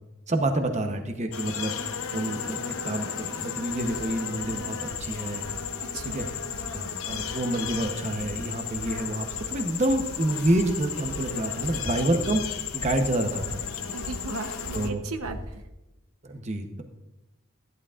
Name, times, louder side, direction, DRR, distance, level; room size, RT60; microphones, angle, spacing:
voice 1, 0.3-1.8 2.1-5.4 6.0-6.3 6.7-13.6 14.7-15.0 16.2-16.8, right 1 dB, 30° right, 5 dB, 0.9 m, -28 dB
sound 1, 1.3-14.9, left 7 dB, 80° left, 0.8 m, -34 dB
sound 2, 3.7-15.6, right 1 dB, 50° right, 2.2 m, -43 dB
voice 2, 5.9-6.2 13.9-15.7, right 3 dB, 85° right, 7 dB, 0.9 m, -36 dB
14.5 x 11.0 x 2.5 m, 0.97 s
head